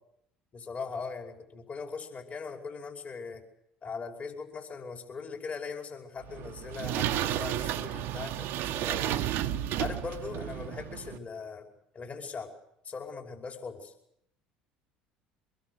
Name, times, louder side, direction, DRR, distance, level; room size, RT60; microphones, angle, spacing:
voice 1, 0.5-3.4 3.8-9.2 9.8-11.7 11.9-12.5 12.8-13.9, left 5 dB, 35° left, 2 dB, 5.4 m, -40 dB
sound 1, 6.2-11.2, right 12 dB, 60° right, 1.4 m, -32 dB
24.5 x 21.0 x 8.1 m, 0.75 s
hypercardioid pair, 65°, 4 cm